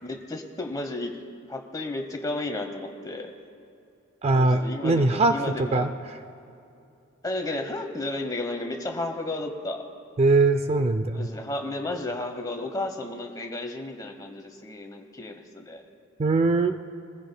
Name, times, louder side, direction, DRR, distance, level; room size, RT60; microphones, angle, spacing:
voice 1, 0.0-1.2 1.5-3.3 4.3-5.9 7.2-9.8 11.1-15.8, left 2 dB, 15° left, 5 dB, 0.9 m, -33 dB
voice 2, 4.2-5.3 5.7-5.9 10.2-11.3 16.2-16.8, right 3 dB, 30° right, 9 dB, 0.4 m, -21 dB
22.5 x 15.0 x 2.2 m, 2.6 s
head